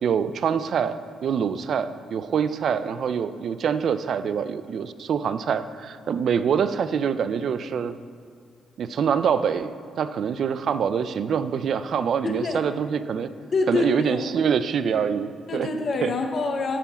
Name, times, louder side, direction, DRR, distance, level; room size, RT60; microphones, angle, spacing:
voice 1, 0.0-8.0 8.8-9.7 10.0-13.3 13.7-15.7 16.0-16.1, right 7 dB, 60° right, 13 dB, 0.4 m, -25 dB
voice 2, 12.2-12.6 13.5-14.2 15.5-16.8, left 3 dB, 45° left, 3 dB, 0.8 m, -26 dB
9.9 x 3.8 x 7.0 m, 2.1 s
cardioid pair, 90°, 0 cm